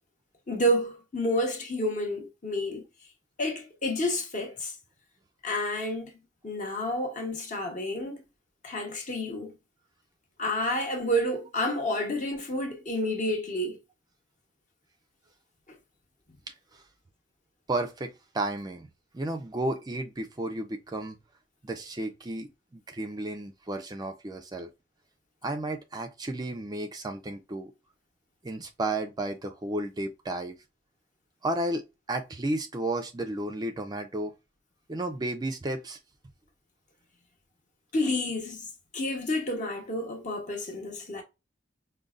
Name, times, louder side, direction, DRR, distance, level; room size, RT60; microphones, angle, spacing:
voice 1, 0.5-2.8 3.4-4.7 5.4-6.1 6.4-8.2 8.6-9.6 10.4-13.8 37.9-38.7 38.9-41.2, left 1 dB, 40° left, 0.9 m, -29 dB
voice 2, 17.7-18.9 19.1-21.2 21.6-24.7 25.4-27.7 28.4-30.6 31.4-34.3 34.9-36.0, right 1 dB, 20° right, 0.4 m, -33 dB
5.2 x 2.1 x 2.4 m
head